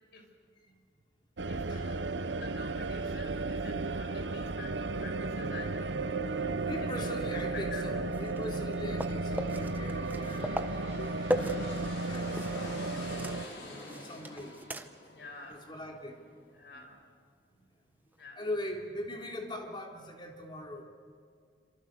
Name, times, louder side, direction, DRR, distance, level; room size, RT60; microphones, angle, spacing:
sound 1, 1.4-13.4, right 3 dB, 80° right, 1.0 m, -34 dB
voice 1, 1.5-6.5 6.8-7.9 11.2-11.6 15.1-15.6 16.5-17.0 18.1-18.5, left 3 dB, 65° left, 4 dB, 5.8 m, -49 dB
voice 2, 6.6-13.0 13.6-14.6 15.1-15.2 15.5-16.2 16.7-16.9 17.5-17.6 18.4-20.8, left 1 dB, 25° left, 1 dB, 3.6 m, -41 dB
sound 2, 8.1-12.7 13.0-15.1 15.5-15.6 18.1-18.2, right 1 dB, 10° right, 1.1 m, -38 dB
sound 3, 9.0-16.6, left 1 dB, 85° left, 6.7 m, -48 dB
29.0 x 27.0 x 6.6 m, 2.1 s
head